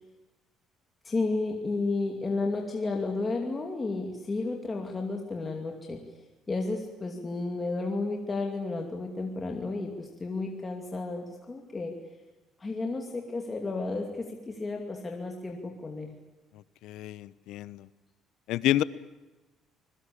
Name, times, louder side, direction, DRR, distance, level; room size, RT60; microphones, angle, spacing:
voice 1, 1.0-6.0 6.5-12.0 12.6-16.1, left 3 dB, 15° left, 1 dB, 2.4 m, -32 dB
voice 2, 16.8-17.9 18.5-18.8, left 14 dB, 70° left, 17 dB, 0.9 m, -28 dB
26.5 x 21.5 x 8.6 m, 1.1 s
cardioid pair, 170°, 0 cm